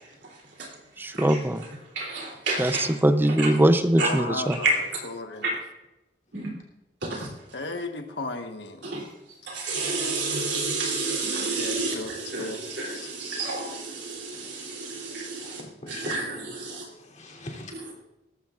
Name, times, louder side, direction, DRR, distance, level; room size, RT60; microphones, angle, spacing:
voice 1, 1.0-1.7 2.6-4.6, right 1 dB, 10° right, 10 dB, 0.6 m, -22 dB
voice 2, 1.9-2.9 3.4-3.5 4.0-4.3 4.6-4.7 5.4-5.5 6.3-6.5 7.0-7.3 8.8-9.1 9.5-15.6 15.9-16.8, right 3 dB, 70° right, -2 dB, 3.2 m, -30 dB
voice 3, 4.0-4.7 5.0-5.4 7.5-8.8 11.6-12.1 12.4-12.6, left 2 dB, 70° left, 5 dB, 1.3 m, -34 dB
voice 4, 15.4-17.9, left 1 dB, 45° left, -2 dB, 3.2 m, -43 dB
18.0 x 15.5 x 2.5 m, 0.97 s
head